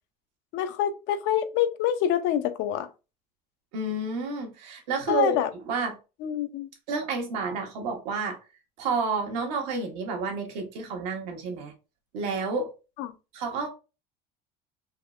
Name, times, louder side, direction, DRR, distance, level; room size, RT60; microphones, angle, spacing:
voice 1, 0.5-2.9 5.1-5.5 6.2-6.7 13.0-13.1, left 10 dB, 65° left, 0.5 m, -26 dB
voice 2, 3.7-5.9 6.9-8.4 8.8-11.7 12.1-12.7 13.3-13.7, right 4 dB, 80° right, 1.0 m, -30 dB
3.5 x 2.0 x 2.3 m
supercardioid pair, 95°, 21 cm